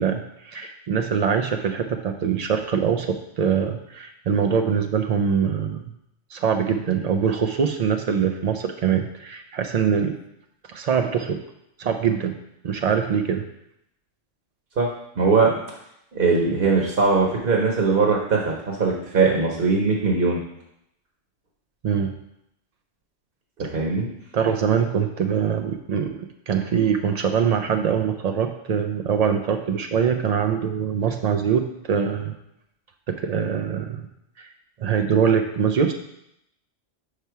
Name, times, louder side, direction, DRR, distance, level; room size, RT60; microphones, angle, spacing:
voice 1, 0.0-5.8 6.3-10.1 10.7-11.4 11.8-12.3 12.6-13.4 21.8-22.1 24.3-32.3 33.1-34.1 34.4-34.5 34.8-35.9, right 7 dB, 90° right, 5 dB, 0.3 m, -23 dB
voice 2, 15.2-15.6 16.1-20.4 23.6-24.1, right 4 dB, 50° right, -1 dB, 1.1 m, -20 dB
5.5 x 5.0 x 4.6 m, 0.80 s
omnidirectional pair, 1.2 m